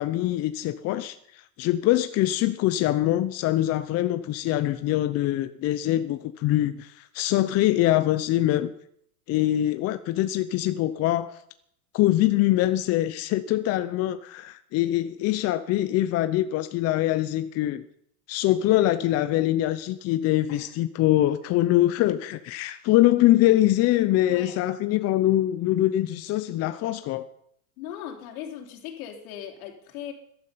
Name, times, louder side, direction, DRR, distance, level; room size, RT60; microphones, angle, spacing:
voice 1, 0.0-8.7 9.3-11.4 11.9-17.8 18.3-27.3, left 14 dB, 35° left, 0.7 m, -23 dB
voice 2, 24.2-24.6 27.8-30.1, left 10 dB, 70° left, 3.3 m, -38 dB
14.5 x 12.0 x 5.7 m
supercardioid pair, 130°, 46 cm